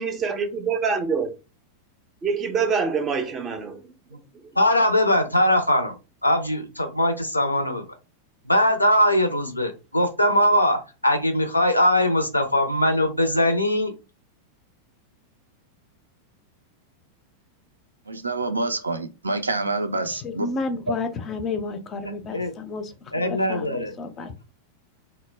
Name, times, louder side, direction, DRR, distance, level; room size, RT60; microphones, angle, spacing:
voice 1, 0.0-1.3 2.2-3.9, right 5 dB, 25° right, 0.5 m, -25 dB
voice 2, 4.6-5.9 6.2-7.8 8.4-13.9 22.3-22.5 23.1-23.9, left 1 dB, 85° left, 0.4 m, -21 dB
voice 3, 18.1-20.5, right 2 dB, 80° right, 0.3 m, -27 dB
voice 4, 20.0-24.3, left 3 dB, 25° left, 0.5 m, -32 dB
2.1 x 2.1 x 3.1 m
figure-of-eight pair, 90°, 0 cm